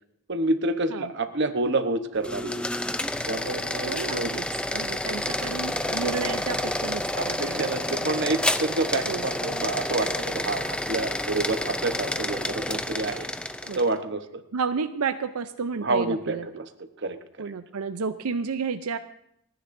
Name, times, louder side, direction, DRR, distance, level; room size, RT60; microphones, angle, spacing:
voice 1, 0.3-2.6 3.3-4.4 7.1-13.3 13.8-14.4 15.8-17.5, right 2 dB, 50° right, 8 dB, 1.0 m, -28 dB
sound 1, 2.1-13.9, left 1 dB, 5° left, 0.4 m, -29 dB
voice 2, 3.9-4.5 4.7-7.7 8.0-8.1 9.1-9.2 13.7-13.8 14.5-16.5 17.4-19.0, right 5 dB, 85° right, 10 dB, 0.6 m, -31 dB
30.0 x 10.0 x 2.6 m, 0.77 s
head